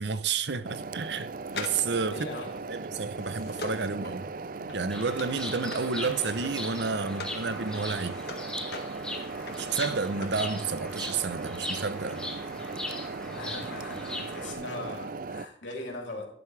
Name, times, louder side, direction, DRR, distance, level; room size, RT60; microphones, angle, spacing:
voice 1, 0.0-2.3 2.7-4.2 4.7-8.2 9.6-12.3, right 4 dB, 70° right, 0.8 m, -31 dB
sound 1, 0.6-15.5, right 3 dB, 50° right, 0.4 m, -38 dB
sound 2, 1.5-7.4 7.8-10.5 10.7-10.8, left 3 dB, 60° left, 1.8 m, -43 dB
voice 2, 2.1-2.6 13.3-16.3, left 2 dB, 80° left, 3.3 m, -40 dB
Bird vocalization bird call bird song, 4.9-14.5, left 1 dB, 5° left, 1.9 m, -39 dB
12.5 x 11.0 x 3.4 m
head